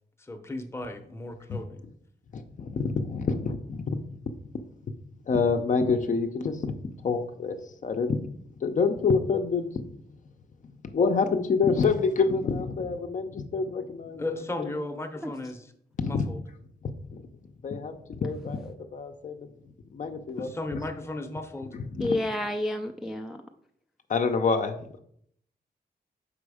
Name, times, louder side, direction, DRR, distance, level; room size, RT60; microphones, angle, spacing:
voice 1, 0.2-1.8 14.2-15.7 16.0-16.4 20.4-21.7, left 2 dB, 15° left, 5 dB, 0.8 m, -35 dB
voice 2, 2.3-4.0 5.3-6.7 7.0-7.6 7.8-8.2 8.6-9.7 10.9-14.2 14.6-14.7 16.0-16.2 17.1-17.2 17.6-17.9 18.2-19.5 19.9-20.5 21.9-22.1 24.1-25.0, left 4 dB, 50° left, 6 dB, 0.6 m, -27 dB
voice 3, 22.0-23.4, left 1 dB, ahead, 3 dB, 0.4 m, -30 dB
6.1 x 5.0 x 4.8 m, 0.67 s
wide cardioid pair, 150°, 17 cm